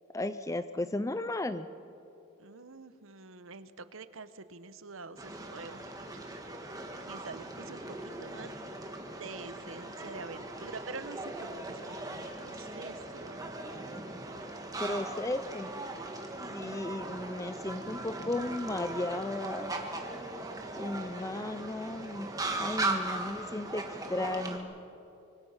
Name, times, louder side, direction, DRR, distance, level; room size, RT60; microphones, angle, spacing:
voice 1, 0.1-1.7 14.8-15.7 16.5-19.8 20.8-24.7, left 2 dB, 15° left, 11 dB, 0.4 m, -35 dB
voice 2, 2.4-5.9 6.2-6.3 7.0-8.5 9.2-13.5 14.8-15.0 16.5-17.3, right 4 dB, 80° right, 12 dB, 1.0 m, -46 dB
sound 1, 5.2-24.6, right 2 dB, 15° right, 1.7 m, -39 dB
25.0 x 25.0 x 5.7 m, 2.9 s
head